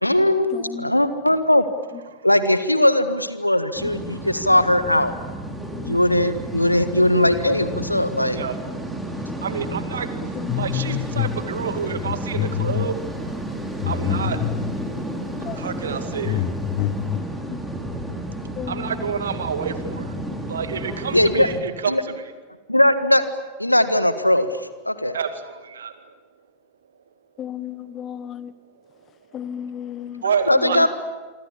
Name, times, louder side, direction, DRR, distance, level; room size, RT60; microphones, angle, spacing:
voice 1, 0.0-1.6 2.2-5.1 5.8-8.4 21.1-21.5 21.9-22.0 22.7-23.2 23.6-25.2 30.5-30.9, left 1 dB, 85° left, 1.6 m, -19 dB
voice 2, 0.5-0.9 5.7-6.0 10.3-10.6 15.3-15.6 17.5-18.2 18.6-19.0 27.4-28.5 29.3-30.2, left 9 dB, 30° left, 1.4 m, -35 dB
sound 1, 3.8-21.6, right 1 dB, 5° right, 4.3 m, -32 dB
voice 3, 9.4-13.4 13.9-14.4 15.5-16.5 18.4-20.2 20.5-22.3 25.1-26.1 27.9-28.0 28.3-28.4 29.3-29.4 29.7-29.8 30.2-30.8, right 7 dB, 65° right, 2.3 m, -29 dB
sound 2, 10.5-11.4 11.7-14.8 15.4-15.6 15.9-17.2, left 12 dB, 45° left, 1.6 m, -26 dB
27.5 x 25.0 x 8.7 m
figure-of-eight pair, 90°, 0 cm